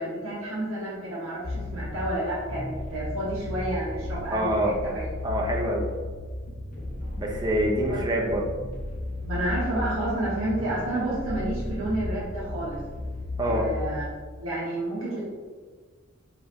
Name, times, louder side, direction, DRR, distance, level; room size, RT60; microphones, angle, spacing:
voice 1, 0.0-5.0 7.0-7.2 7.6-8.0 9.2-12.8 13.4-14.0 14.4-15.2, right 1 dB, 85° right, -7 dB, 1.0 m, -30 dB
sound 1, 1.4-14.0, left 1 dB, 45° left, 0.5 m, -34 dB
voice 2, 4.3-4.8 5.2-5.9 7.2-8.5 13.4-13.6, right 1 dB, 20° right, -1 dB, 0.6 m, -26 dB
4.6 x 3.2 x 3.0 m, 1.5 s
head